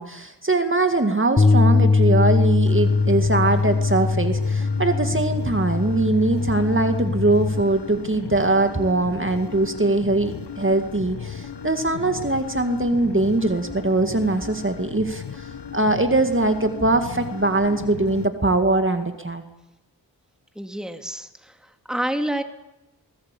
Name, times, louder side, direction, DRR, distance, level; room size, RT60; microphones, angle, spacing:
voice 1, 0.0-19.4, right 2 dB, 30° right, 7 dB, 2.1 m, -22 dB
Bass guitar, 1.4-7.6, left 4 dB, 25° left, 0.9 m, -21 dB
sound 1, 2.7-18.3, left 6 dB, 80° left, 1.5 m, -36 dB
voice 2, 20.6-22.4, right 1 dB, ahead, 6 dB, 2.3 m, -28 dB
22.5 x 19.5 x 8.5 m, 0.92 s
wide cardioid pair, 65°, 41 cm